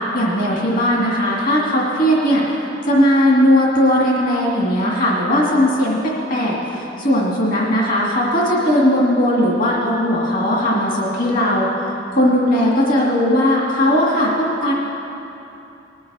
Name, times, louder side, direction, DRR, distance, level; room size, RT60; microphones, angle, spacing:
voice 1, 0.0-11.7 12.1-14.7, equal, 45° left, -4 dB, 2.1 m, -18 dB
19.5 x 7.7 x 5.5 m, 2.8 s
head